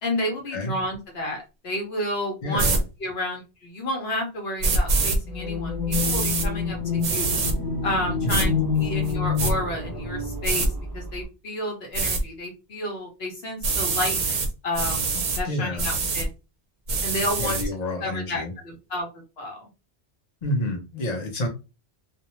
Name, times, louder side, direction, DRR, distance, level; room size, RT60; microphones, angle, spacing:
voice 1, 0.0-2.7 3.0-7.4 7.8-15.1 15.4-16.3 17.0-17.6 18.0-19.7, left 1 dB, 70° left, 1 dB, 1.0 m, -31 dB
voice 2, 2.4-2.8 8.2-8.5 15.5-15.8 17.4-18.5 20.4-21.5, left 1 dB, 40° left, 2 dB, 0.8 m, -28 dB
sound 1, 2.6-2.8 4.6-5.2 5.9-6.5 7.0-7.5 8.3-8.5 9.1-9.5 10.4-10.7 11.9-12.2 13.6-14.5 14.7-15.4 15.8-16.3 16.9-17.6, right 3 dB, 50° right, 0.6 m, -24 dB
sound 2, 5.2-11.2, left 5 dB, 5° left, 0.8 m, -28 dB
2.5 x 2.1 x 3.0 m, 0.29 s
omnidirectional pair, 1.1 m